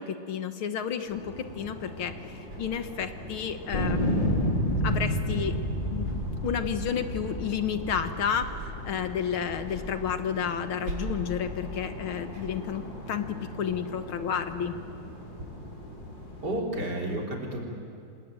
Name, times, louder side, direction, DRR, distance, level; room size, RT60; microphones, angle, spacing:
voice 1, 0.0-4.5 4.8-5.6 5.9-6.1 6.4-14.8, left 8 dB, 75° left, 9 dB, 2.0 m, -31 dB
sound 1, 1.0-16.6, left 1 dB, 55° left, 5.5 m, -43 dB
sound 2, 1.4-15.4, right 1 dB, 80° right, 5.8 m, -45 dB
sound 3, 3.7-8.9 9.5-10.3, equal, 20° left, 3.1 m, -29 dB
voice 2, 16.4-17.6, right 1 dB, 50° right, -1 dB, 4.1 m, -31 dB
27.0 x 20.0 x 9.0 m, 2.6 s
omnidirectional pair, 2.4 m